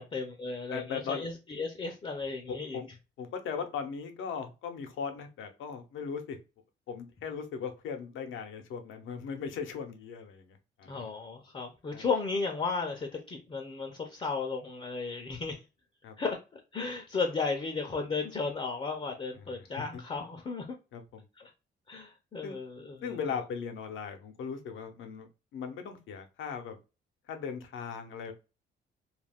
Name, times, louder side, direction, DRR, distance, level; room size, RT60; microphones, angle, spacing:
voice 1, 0.0-2.8 10.9-15.6 16.2-20.6 21.4-21.5 21.9-23.2, left 4 dB, 30° left, 0.5 m, -34 dB
voice 2, 0.7-1.2 2.5-2.9 3.2-6.4 6.9-11.1 11.9-12.1 16.0-16.2 19.3-19.4 19.8-20.0 20.9-21.2 22.4-22.6 23.0-25.3 25.5-26.8 27.3-28.3, left 6 dB, 80° left, 0.6 m, -38 dB
2.4 x 2.2 x 3.4 m
cardioid pair, 90°, 20 cm